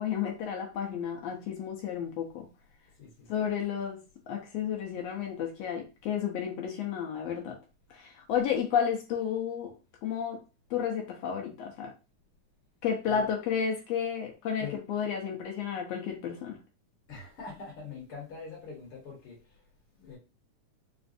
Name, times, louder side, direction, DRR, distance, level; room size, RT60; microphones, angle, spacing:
voice 1, 0.0-2.5 3.3-4.0 4.3-7.6 7.9-9.7 10.0-10.4 10.7-11.9 12.8-16.6, left 8 dB, 75° left, 1.6 m, -32 dB
voice 2, 3.0-3.5 13.1-13.3 14.6-14.8 17.1-19.4 20.0-20.2, left 5 dB, 50° left, 2.1 m, -43 dB
5.0 x 2.5 x 2.5 m
omnidirectional pair, 3.7 m